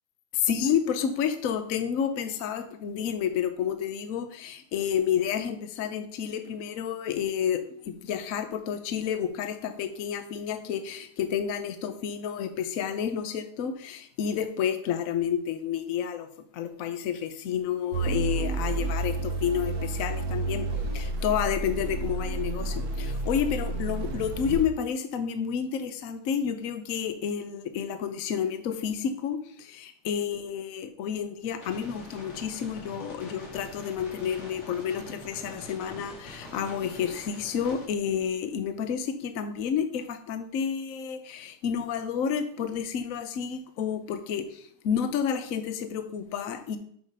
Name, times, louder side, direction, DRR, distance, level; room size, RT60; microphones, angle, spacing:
voice 1, 0.3-16.3 16.5-20.7 20.9-46.8, left 8 dB, 60° left, 8 dB, 0.9 m, -30 dB
sound 1, 17.9-24.6, right 2 dB, 55° right, 1.3 m, -30 dB
sound 2, 31.6-37.9, left 1 dB, 80° left, 3.8 m, -45 dB
7.7 x 5.0 x 5.5 m, 0.64 s
omnidirectional pair, 2.4 m